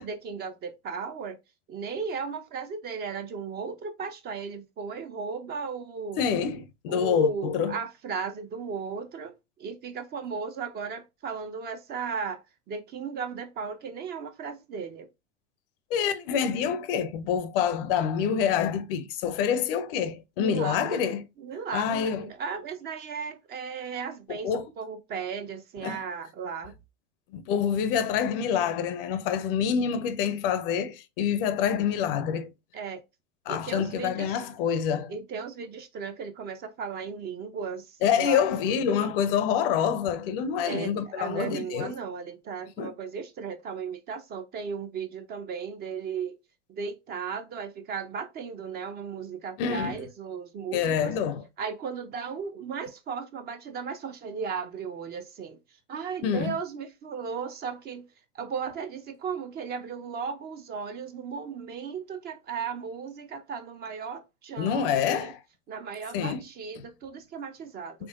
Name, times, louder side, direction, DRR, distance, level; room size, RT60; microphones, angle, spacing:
voice 1, 0.0-1.4 1.7-6.2 6.9-9.3 9.6-15.1 20.4-21.1 21.4-26.8 32.7-33.0 33.5-34.5 35.1-38.4 40.6-46.4 46.7-51.2 51.6-55.6 55.9-58.1 58.3-65.3 65.7-68.1, right 6 dB, 25° right, 0.5 m, -36 dB
voice 2, 6.2-7.8 15.9-21.2 21.7-22.3 24.3-24.7 25.8-26.0 27.3-32.5 33.5-35.1 38.0-41.9 42.8-42.9 49.6-50.0 50.7-51.4 56.2-56.5 64.6-65.4 66.1-66.4 68.0-68.1, left 7 dB, 50° left, 0.6 m, -27 dB
3.7 x 3.2 x 2.4 m
figure-of-eight pair, 90°, 36 cm